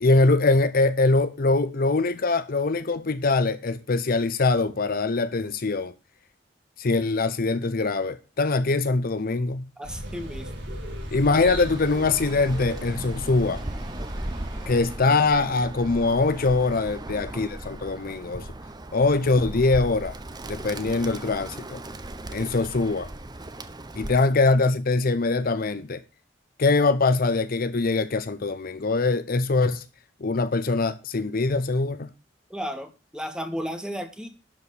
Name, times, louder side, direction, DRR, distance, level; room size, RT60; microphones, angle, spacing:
voice 1, 0.0-5.9 6.8-9.7 11.1-13.6 14.7-18.5 18.9-20.2 20.5-21.8 22.3-23.1 24.0-26.0 26.6-29.8 30.2-32.1, left 3 dB, 50° left, 0.7 m, -23 dB
voice 2, 9.8-10.5 17.0-17.4 32.5-34.3, equal, 5° right, 1.6 m, -34 dB
sound 1, 9.8-15.0, equal, 90° right, 4.8 m, -36 dB
Bird, 11.3-24.4, right 1 dB, 25° right, 0.9 m, -38 dB
12.0 x 4.7 x 7.0 m
head